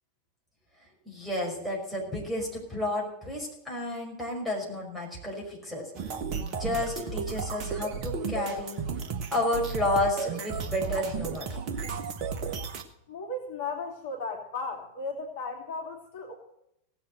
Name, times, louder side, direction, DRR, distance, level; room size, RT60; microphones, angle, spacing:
voice 1, 1.1-5.9 6.3-8.8 9.3-11.6, left 2 dB, ahead, -2 dB, 5.6 m, -31 dB
sound 1, 5.9-12.8, right 6 dB, 40° right, 1.5 m, -33 dB
voice 2, 13.1-16.3, left 3 dB, 50° left, 0 dB, 2.6 m, -35 dB
18.0 x 7.6 x 6.6 m, 0.80 s
figure-of-eight pair, 90°, 0 cm